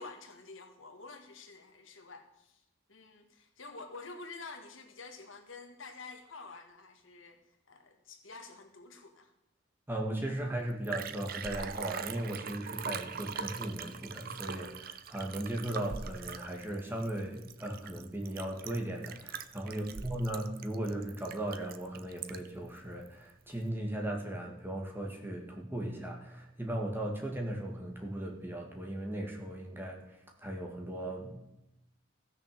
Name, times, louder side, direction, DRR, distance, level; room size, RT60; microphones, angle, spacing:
voice 1, 0.0-7.4 7.7-9.3 19.6-20.1, left 3 dB, 80° left, 5 dB, 1.8 m, -49 dB
voice 2, 9.9-30.0 30.4-31.4, right 1 dB, 10° right, 0 dB, 1.9 m, -37 dB
Liquid, 10.4-10.5 10.7-22.6 23.1-23.2, right 6 dB, 50° right, 0.6 m, -42 dB
15.0 x 6.7 x 6.8 m, 0.90 s
head